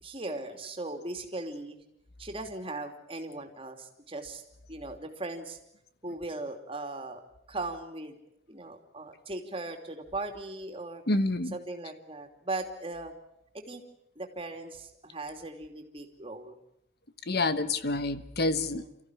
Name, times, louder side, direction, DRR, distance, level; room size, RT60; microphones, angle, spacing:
voice 1, 0.0-1.8 2.2-4.4 4.7-5.6 6.0-7.2 7.5-8.2 8.5-11.0 11.5-13.1 13.5-13.8 14.1-16.6 18.6-19.0, right 2 dB, 30° right, 4 dB, 3.0 m, -38 dB
voice 2, 11.1-11.5 17.3-18.8, left 2 dB, 50° left, 12 dB, 1.2 m, -28 dB
29.0 x 15.0 x 9.9 m, 0.79 s
head